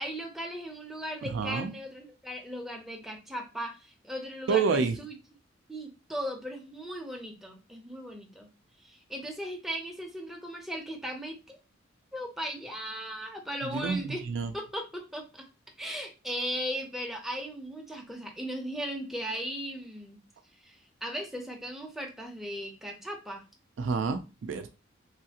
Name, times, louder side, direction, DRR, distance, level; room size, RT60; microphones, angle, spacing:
voice 1, 0.0-5.1 5.7-8.5 8.8-11.6 12.1-14.2 14.5-15.4 15.8-20.2 20.6-23.4, equal, ahead, 1 dB, 0.6 m, -37 dB
voice 2, 1.3-1.7 4.5-5.0 13.6-14.5 23.8-24.7, right 5 dB, 65° right, 8 dB, 0.4 m, -29 dB
3.2 x 2.4 x 2.8 m, 0.30 s
head